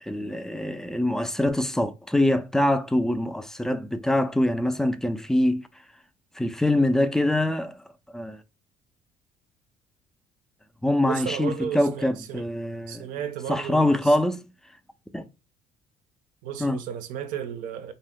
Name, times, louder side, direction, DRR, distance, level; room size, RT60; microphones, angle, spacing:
voice 1, 0.0-5.7 6.4-7.8 8.1-8.4 10.8-13.1 13.5-14.5 15.1-15.2 16.6-16.8, left 1 dB, 5° left, 0.3 m, -24 dB
voice 2, 11.0-12.4 12.9-14.2 16.4-17.9, right 9 dB, 75° right, 0.5 m, -34 dB
2.6 x 2.1 x 3.5 m
cardioid pair, 90°, 14 cm